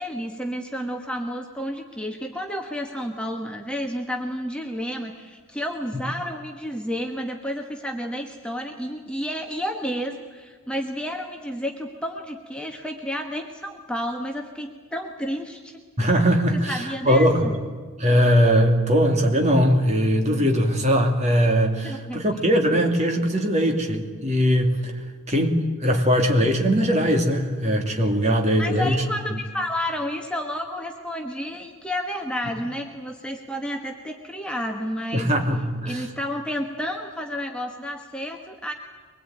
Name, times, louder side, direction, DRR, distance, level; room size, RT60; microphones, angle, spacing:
voice 1, 0.0-15.8 16.5-17.5 21.8-22.2 28.6-35.3 35.8-38.7, equal, 5° left, 2 dB, 1.3 m, -31 dB
voice 2, 16.0-17.4 18.0-25.0 25.3-29.0 29.3-29.4 35.1-36.1, equal, 30° right, 4 dB, 2.6 m, -20 dB
24.0 x 20.5 x 9.2 m, 1.5 s
head